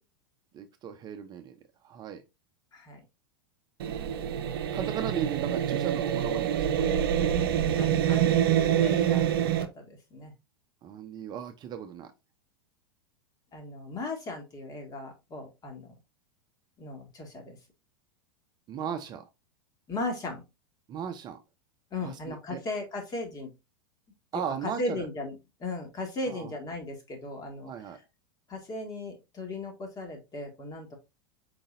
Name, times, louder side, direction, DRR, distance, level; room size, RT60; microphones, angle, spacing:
voice 1, 0.5-1.6 1.8-2.2 4.7-7.0 10.8-12.1 18.7-19.2 20.9-21.4 22.0-22.6 24.3-25.1 26.3-26.5 27.6-28.0, right 8 dB, 35° right, 0.7 m, -36 dB
voice 2, 2.7-3.0 7.7-10.3 13.5-15.9 16.8-17.6 19.9-20.4 21.9-23.5 24.3-27.7 28.5-31.0, left 2 dB, 30° left, 1.9 m, -37 dB
sound 1, 3.8-9.6, right 10 dB, 70° right, 0.7 m, -26 dB
4.9 x 3.8 x 2.5 m
hypercardioid pair, 100°, 13 cm